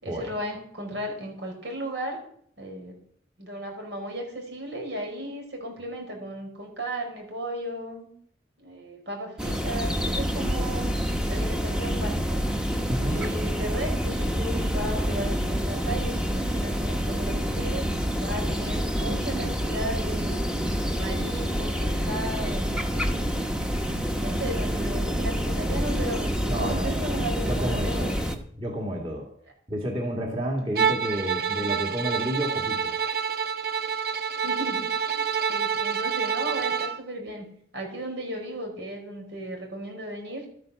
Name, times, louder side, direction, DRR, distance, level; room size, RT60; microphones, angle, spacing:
voice 1, 0.0-2.2 2.6-3.0 3.4-8.1 8.6-10.9 11.3-12.4 13.0-20.5 20.9-23.5 23.9-28.1 34.4-40.4, right 1 dB, 80° right, 2 dB, 4.8 m, -35 dB
sound 1, 9.4-28.4, equal, 5° right, 1.0 m, -27 dB
voice 2, 12.9-13.2 26.5-27.1 27.4-28.1 28.6-29.3 29.7-32.9, equal, 30° right, 0 dB, 2.0 m, -30 dB
Bowed string instrument, 30.7-37.0, right 6 dB, 55° right, 0.7 m, -27 dB
13.0 x 9.3 x 6.4 m, 0.65 s
head